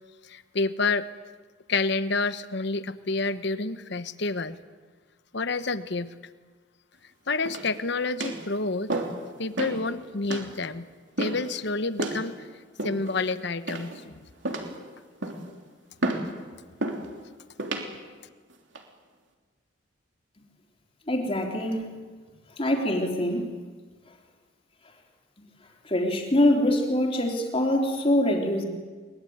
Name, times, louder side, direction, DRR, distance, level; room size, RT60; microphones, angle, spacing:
voice 1, 0.3-1.0 1.7-4.6 5.3-6.1 7.3-8.9 9.4-10.8 11.2-12.3 12.8-14.2, left 3 dB, 60° left, 12 dB, 1.0 m, -28 dB
sound 1, 7.5-7.8 8.2-8.5 8.9-9.2 9.6-9.8 10.3-10.5 11.2-11.5 12.0-12.2 12.8-13.2 13.7-14.1 14.4-14.8 15.2-15.5 16.0-16.3 16.8-17.1 17.6-17.9 18.5-18.8, right 2 dB, 65° right, 3.2 m, -31 dB
voice 2, 21.1-21.9 22.6-23.5 25.8-28.7, left 1 dB, 30° left, 2 dB, 3.3 m, -24 dB
23.0 x 21.0 x 9.4 m, 1.4 s
head